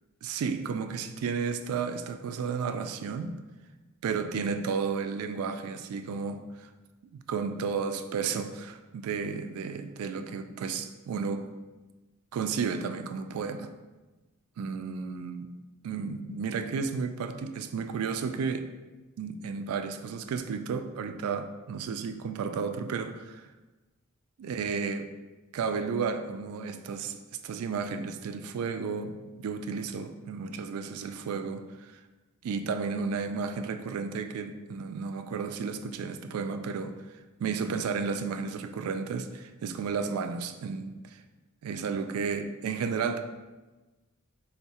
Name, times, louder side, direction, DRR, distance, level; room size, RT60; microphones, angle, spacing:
voice 1, 0.2-3.3 4.0-6.7 7.0-11.5 12.3-13.7 14.6-15.5 15.8-18.7 19.2-23.5 24.4-25.1 25.5-27.2 27.4-32.0 32.4-36.9 37.4-41.2 41.6-43.2, right 5 dB, 80° right, 8 dB, 0.3 m, -33 dB
3.5 x 2.1 x 4.1 m, 1.2 s
head